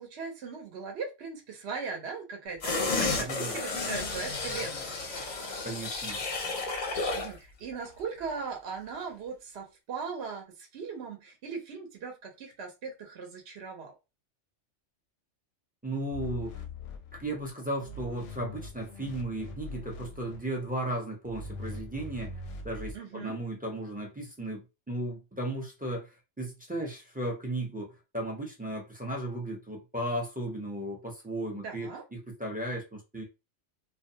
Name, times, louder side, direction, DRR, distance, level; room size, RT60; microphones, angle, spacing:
voice 1, 0.0-5.0 7.1-13.9 22.9-23.4 31.5-32.0, right 5 dB, 65° right, 1.0 m, -39 dB
sound 1, 2.6-7.4 7.7-7.8, left 3 dB, 50° left, 0.6 m, -32 dB
voice 2, 2.9-3.6 5.6-6.2 15.8-16.6 17.1-22.3 22.6-26.1 26.4-33.2, right 1 dB, 10° right, 0.4 m, -35 dB
sound 2, 16.1-17.5 17.8-20.7 21.2-23.0, left 2 dB, 90° left, 0.9 m, -42 dB
2.3 x 2.2 x 2.7 m
omnidirectional pair, 1.2 m